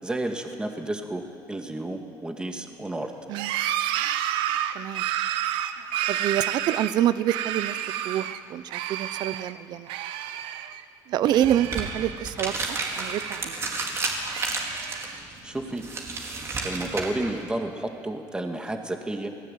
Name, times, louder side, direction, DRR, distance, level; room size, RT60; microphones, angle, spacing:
voice 1, 0.0-3.1 15.4-15.8 16.6-19.3, right 1 dB, 10° right, 4 dB, 2.2 m, -31 dB
sound 1, 3.3-8.4 8.7-9.5 9.9-10.8 11.1-12.3 12.7-13.7 14.2-15.2, right 11 dB, 80° right, 1.1 m, -30 dB
voice 2, 4.7-5.1 6.1-7.8 8.0-9.9 11.1-13.5, right 11 dB, 55° right, 15 dB, 0.8 m, -27 dB
sound 2, 11.3-17.4, right 3 dB, 30° right, 4.1 m, -32 dB
28.0 x 19.0 x 9.3 m, 2.3 s
cardioid pair, 135°, 8 cm